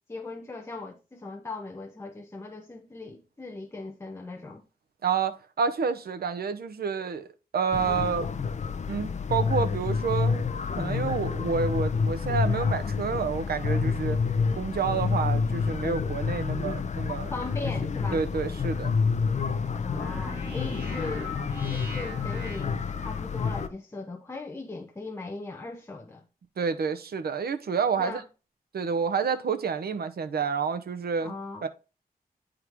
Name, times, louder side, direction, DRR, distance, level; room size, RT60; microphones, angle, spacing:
voice 1, 0.1-4.6 17.3-18.2 19.7-21.3 21.7-26.2 28.0-28.2 31.2-31.7, left 3 dB, 15° left, 0.9 m, -39 dB
voice 2, 5.0-7.3 7.5-8.3 8.9-10.4 10.8-14.2 14.6-17.3 18.1-18.9 26.6-28.2 28.7-31.3 31.6-31.7, right 6 dB, 85° right, 0.8 m, -29 dB
sound 1, 7.7-23.7, left 5 dB, 50° left, 0.7 m, -28 dB
sound 2, 20.0-23.3, left 1 dB, 10° right, 4.2 m, -41 dB
9.6 x 3.8 x 4.6 m
wide cardioid pair, 160°, 16 cm